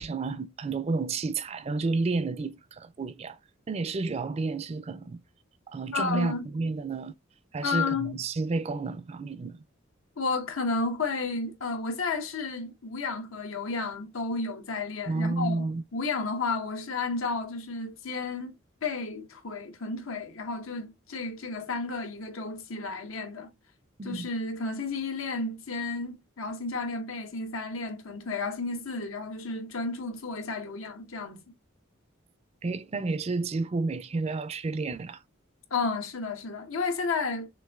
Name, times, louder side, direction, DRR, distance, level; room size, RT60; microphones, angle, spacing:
voice 1, 0.0-3.4 3.7-5.2 5.7-7.1 7.5-9.6 15.1-15.8 24.0-24.3 32.6-35.2, right 3 dB, 30° right, 0.3 m, -31 dB
voice 2, 5.9-6.5 7.6-8.2 10.2-18.5 18.8-23.5 24.0-31.5 35.7-37.5, left 3 dB, 85° left, 1.0 m, -32 dB
6.3 x 2.6 x 2.3 m
head